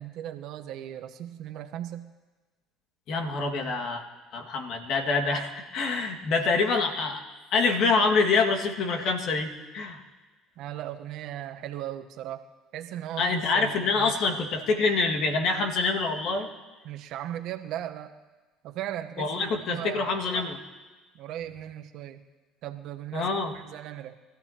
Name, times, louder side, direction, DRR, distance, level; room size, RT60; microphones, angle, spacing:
voice 1, 0.0-2.1 10.6-12.5 12.7-14.1 16.8-18.2 18.6-20.2 21.1-22.2 22.6-24.2, right 12 dB, 65° right, 7 dB, 1.0 m, -37 dB
voice 2, 3.1-4.0 4.3-7.2 7.5-10.0 13.2-16.5 19.2-20.6 23.1-23.5, left 4 dB, 60° left, 2 dB, 1.9 m, -26 dB
23.5 x 14.0 x 2.9 m, 1.3 s
hypercardioid pair, 75°, 0 cm